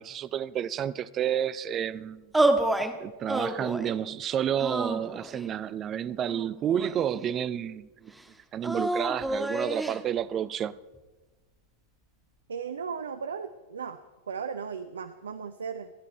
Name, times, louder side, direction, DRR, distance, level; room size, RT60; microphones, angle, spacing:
voice 1, 0.0-2.3 3.0-8.1 8.5-10.8, right 9 dB, 30° right, 0.6 m, -30 dB
sound 1, 2.3-2.9 3.3-4.0 4.6-5.5 6.3-7.3 8.6-10.0, right 2 dB, 5° right, 1.3 m, -28 dB
voice 2, 12.5-14.0 14.3-15.9, right 6 dB, 70° right, 0.7 m, -36 dB
29.0 x 11.0 x 4.4 m
figure-of-eight pair, 90°, 0 cm